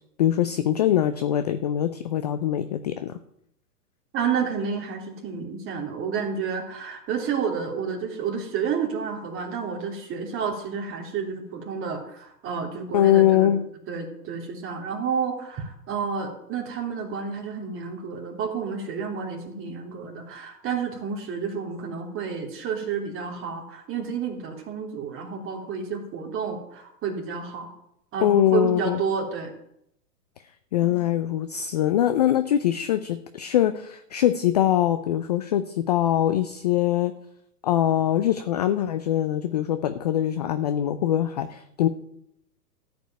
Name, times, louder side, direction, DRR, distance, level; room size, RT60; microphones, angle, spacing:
voice 1, 0.2-3.1 12.9-13.6 28.2-29.0 30.7-37.1 37.6-41.9, left 11 dB, 30° left, 10 dB, 0.4 m, -23 dB
voice 2, 4.1-13.5 13.9-27.7 28.1-29.5 30.8-31.0, right 6 dB, 25° right, 1 dB, 3.1 m, -30 dB
13.5 x 5.3 x 9.0 m, 0.76 s
hypercardioid pair, 125°, 48 cm